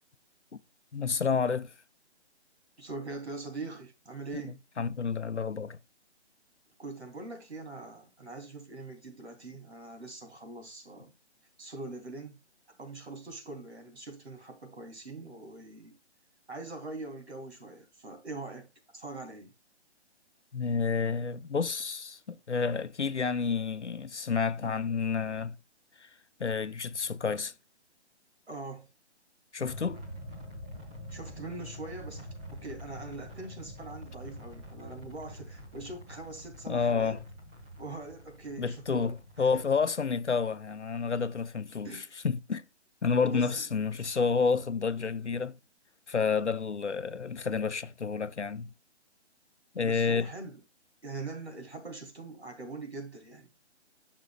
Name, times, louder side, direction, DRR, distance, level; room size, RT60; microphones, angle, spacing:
voice 1, 0.9-1.7 4.3-5.8 20.5-25.6 26.4-27.5 29.5-30.0 36.7-37.2 38.6-42.6 43.0-45.6 46.1-48.7 49.7-50.3, left 5 dB, 85° left, 0.7 m, -30 dB
voice 2, 2.8-4.6 6.8-11.1 11.6-12.4 12.8-16.0 16.5-19.5 28.5-28.9 31.1-37.2 37.8-39.1 39.5-39.6 41.8-42.1 43.2-43.6 49.8-50.6 51.0-53.5, right 3 dB, 70° right, 2.8 m, -42 dB
sound 1, 29.6-39.9, equal, 5° right, 0.5 m, -46 dB
9.9 x 6.3 x 2.2 m
figure-of-eight pair, 135°, 34 cm